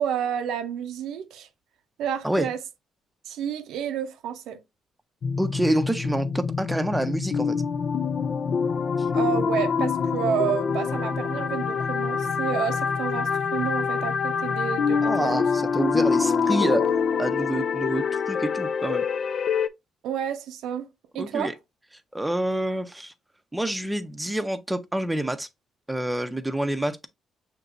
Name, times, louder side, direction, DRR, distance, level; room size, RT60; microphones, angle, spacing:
voice 1, 0.0-1.5 2.0-2.6 3.3-4.6 9.1-15.5 20.0-20.9 21.1-21.5, right 9 dB, 85° right, 0.6 m, -30 dB
sound 1, 5.2-19.7, left 6 dB, 55° left, 0.4 m, -25 dB
voice 2, 5.4-7.6 15.0-16.8 17.2-19.0 21.2-21.5 22.1-23.1 23.5-25.5 25.9-27.1, right 1 dB, 10° right, 0.6 m, -27 dB
6.5 x 2.9 x 2.5 m
cardioid pair, 90°, 0 cm